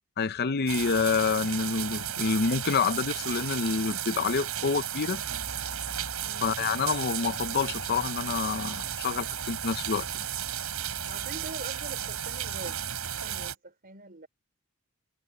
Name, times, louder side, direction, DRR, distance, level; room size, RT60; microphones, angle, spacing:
voice 1, 0.2-5.2 6.4-10.2, left 5 dB, 50° left, 0.6 m, -28 dB
sound 1, 0.7-13.6, right 9 dB, 80° right, 6.0 m, -34 dB
voice 2, 11.1-14.3, right 2 dB, 45° right, 4.4 m, -44 dB
head